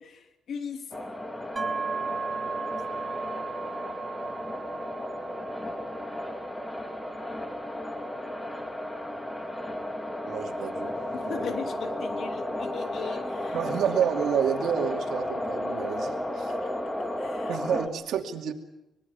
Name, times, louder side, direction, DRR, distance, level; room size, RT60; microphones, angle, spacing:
voice 1, 0.0-0.9 11.1-13.6 16.5-16.8 17.2-17.6, left 6 dB, 60° left, 5 dB, 3.0 m, -39 dB
sound 1, 0.9-17.9, left 1 dB, 10° left, 2.3 m, -34 dB
sound 2, 1.6-15.2, right 4 dB, 25° right, 1.8 m, -39 dB
voice 2, 10.3-10.9 11.3-11.4 13.5-16.5 17.5-18.5, right 8 dB, 75° right, 4 dB, 2.5 m, -29 dB
25.0 x 21.5 x 7.2 m, 0.92 s
cardioid pair, 130°, 0 cm